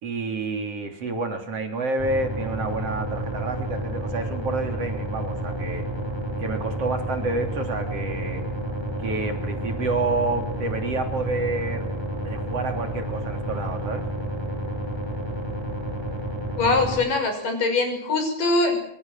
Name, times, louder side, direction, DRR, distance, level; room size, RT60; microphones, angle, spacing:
voice 1, 0.0-5.8 6.4-8.4 9.0-11.9 12.2-14.0, right 3 dB, 50° right, 5 dB, 4.2 m, -29 dB
sound 1, 2.0-17.0, right 1 dB, 5° right, 5.7 m, -30 dB
voice 2, 16.6-18.7, left 3 dB, 90° left, 6 dB, 7.7 m, -22 dB
26.0 x 25.0 x 7.6 m, 0.69 s
omnidirectional pair, 3.7 m